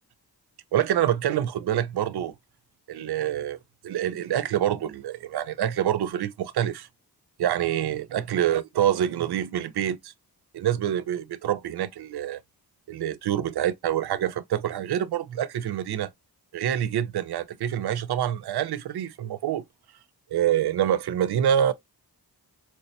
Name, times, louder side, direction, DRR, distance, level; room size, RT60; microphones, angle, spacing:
voice 1, 0.7-2.3 2.9-3.6 3.8-6.9 7.4-10.1 10.5-12.4 12.9-16.1 16.5-19.6 20.3-21.7, right 10 dB, 75° right, 0.5 m, -26 dB
4.4 x 2.1 x 2.7 m
wide cardioid pair, 170°, 39 cm